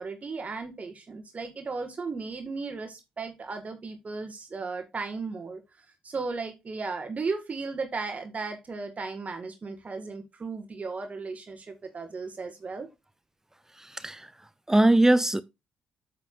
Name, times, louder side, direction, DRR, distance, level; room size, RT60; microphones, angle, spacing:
voice 1, 0.0-12.9, right 4 dB, 35° right, 1.6 m, -35 dB
voice 2, 13.8-14.3 14.7-15.4, right 1 dB, 10° right, 0.5 m, -21 dB
8.1 x 7.8 x 2.4 m
figure-of-eight pair, 40°, 4 cm